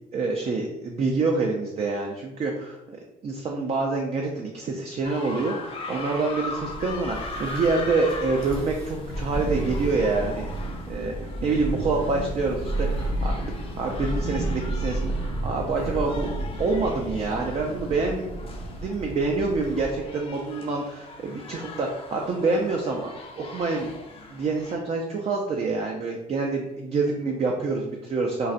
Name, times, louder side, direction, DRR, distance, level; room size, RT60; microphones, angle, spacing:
voice 1, 0.1-3.0 3.2-10.5 10.9-15.1 15.4-16.3 16.6-18.4 18.8-23.9 24.3-28.5, right 3 dB, 40° right, 1 dB, 0.4 m, -27 dB
sound 1, 5.0-24.7, left 3 dB, 35° left, 0.5 m, -40 dB
Thunder, 6.5-20.2, right 1 dB, 60° right, 0.9 m, -32 dB
3.8 x 2.1 x 2.5 m, 0.91 s
cardioid pair, 110°, 17 cm